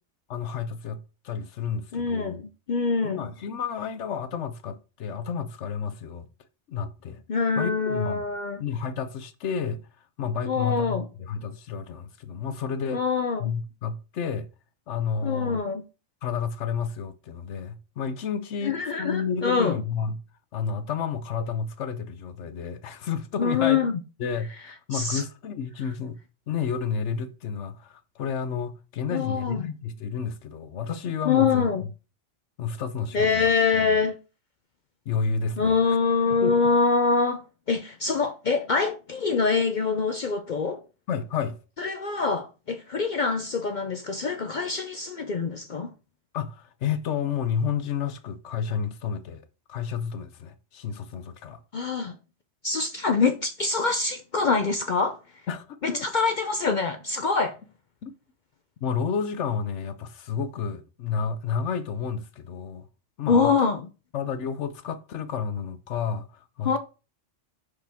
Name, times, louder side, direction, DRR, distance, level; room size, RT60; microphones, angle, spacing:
voice 1, 0.3-2.4 3.0-6.3 6.7-7.2 7.6-8.3 8.6-9.8 10.2-13.0 13.4-14.5 14.9-15.6 16.2-20.2 20.5-23.8 24.2-26.2 26.5-31.7 32.6-34.0 35.1-36.0 36.3-36.6 41.1-41.6 46.3-49.4 49.7-51.6 55.5-56.1 58.0-58.1 58.8-62.8 63.2-63.5 64.1-66.8, left 6 dB, 70° left, 1.1 m, -31 dB
voice 2, 1.9-3.3 7.3-8.6 10.5-11.1 12.9-13.5 15.2-15.8 18.6-19.8 23.4-24.0 24.9-25.2 29.1-29.6 31.2-31.8 33.1-34.2 35.6-40.8 41.8-45.9 51.7-52.2 52.6-55.2 55.8-57.6 63.3-63.9 66.6-66.8, left 4 dB, 55° left, 0.5 m, -25 dB
5.9 x 4.9 x 3.5 m
omnidirectional pair, 1.3 m